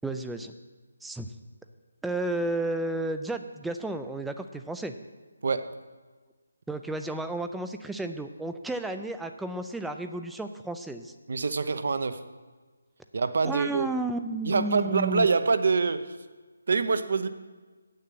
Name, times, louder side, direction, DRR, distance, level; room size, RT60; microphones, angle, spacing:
voice 1, 0.0-0.5 1.0-1.3 2.0-4.9 6.7-11.1 13.4-15.3, right 2 dB, 5° right, 7 dB, 0.4 m, -32 dB
voice 2, 5.4-5.7 11.3-12.2 13.1-13.9 14.5-16.2 16.7-17.3, right 4 dB, 55° right, 11 dB, 0.7 m, -25 dB
8.4 x 6.6 x 7.7 m, 1.3 s
figure-of-eight pair, 160°, 0 cm